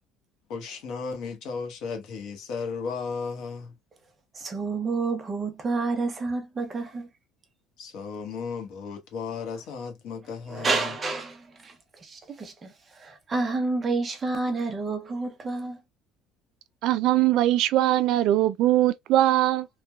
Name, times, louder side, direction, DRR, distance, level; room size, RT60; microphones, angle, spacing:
voice 1, 0.5-3.7 7.8-10.9, left 5 dB, 60° left, 1.0 m, -35 dB
voice 2, 4.3-7.1 10.5-15.8, right 3 dB, 20° right, 0.7 m, -29 dB
voice 3, 16.8-19.7, right 14 dB, 60° right, 0.3 m, -21 dB
3.1 x 2.2 x 2.2 m
cardioid pair, 160°, 0 cm